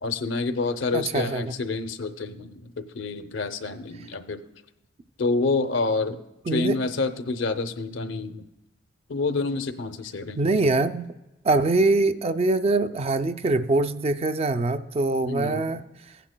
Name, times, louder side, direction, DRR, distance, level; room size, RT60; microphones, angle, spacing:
voice 1, 0.0-4.4 5.2-6.2 6.5-8.4 9.1-10.5 15.2-15.7, left 3 dB, 70° left, 9 dB, 0.6 m, -28 dB
voice 2, 0.9-1.5 6.5-6.8 10.3-11.1 11.4-15.8, right 2 dB, 30° right, 10 dB, 0.4 m, -23 dB
15.5 x 9.9 x 2.2 m, 0.96 s
head